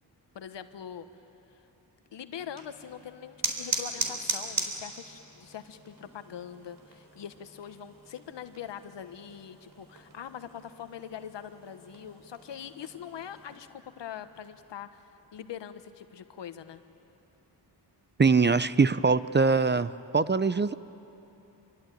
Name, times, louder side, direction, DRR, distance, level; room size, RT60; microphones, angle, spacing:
voice 1, 0.3-1.1 2.1-16.8, left 9 dB, 75° left, 10 dB, 1.3 m, -43 dB
sound 1, 2.4-13.5, right 3 dB, 50° right, 3.9 m, -39 dB
voice 2, 18.2-20.7, right 4 dB, 25° right, 15 dB, 0.6 m, -23 dB
26.0 x 23.0 x 9.2 m, 2.9 s
cardioid pair, 70°, 43 cm